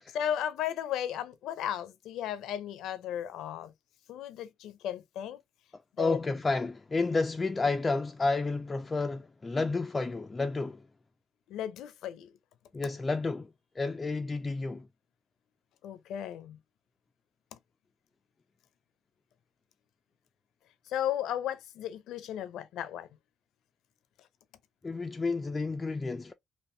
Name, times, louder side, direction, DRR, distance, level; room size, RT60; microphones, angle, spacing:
voice 1, 0.1-3.7 4.1-5.4 6.0-6.2 11.5-12.3 15.8-16.6 17.5-17.6 20.9-23.1, left 10 dB, 85° left, 0.5 m, -35 dB
voice 2, 6.0-10.8 12.7-13.5 13.8-14.9 24.8-26.3, left 3 dB, 25° left, 0.3 m, -31 dB
3.5 x 2.5 x 2.6 m
cardioid pair, 90°, 0 cm